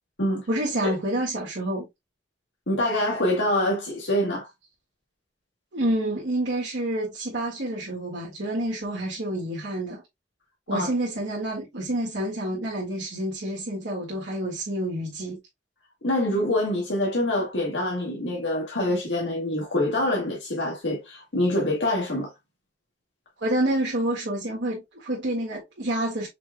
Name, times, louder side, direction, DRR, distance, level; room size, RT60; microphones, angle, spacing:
voice 1, 0.5-1.9 5.7-10.0 10.7-15.4 23.4-26.3, right 1 dB, 80° right, 1.8 m, -28 dB
voice 2, 2.7-4.5 10.7-10.9 16.0-22.3, left 1 dB, 85° left, 1.7 m, -25 dB
5.9 x 3.5 x 2.2 m
head